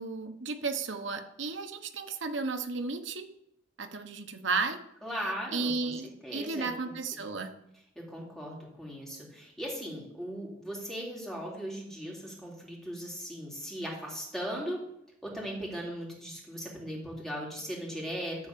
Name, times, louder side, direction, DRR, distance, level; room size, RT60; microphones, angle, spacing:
voice 1, 0.0-3.2 3.8-4.8 5.5-7.5, right 4 dB, 80° right, 7 dB, 1.1 m, -33 dB
voice 2, 5.0-5.9 6.2-7.0 8.1-14.8 15.2-18.4, equal, ahead, -3 dB, 3.0 m, -38 dB
13.0 x 4.5 x 6.9 m, 0.77 s
head